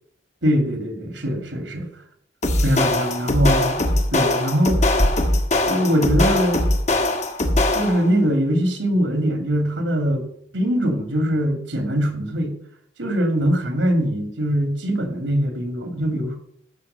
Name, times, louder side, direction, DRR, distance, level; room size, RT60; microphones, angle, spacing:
voice 1, 0.4-1.9 2.6-3.8 4.1-5.0 5.7-6.6 7.7-10.2 10.5-12.5 13.0-16.4, equal, 70° right, 7 dB, 2.3 m, -22 dB
sound 1, 2.4-8.1, left 1 dB, 35° left, 1.5 m, -21 dB
13.5 x 6.0 x 6.8 m, 0.67 s
head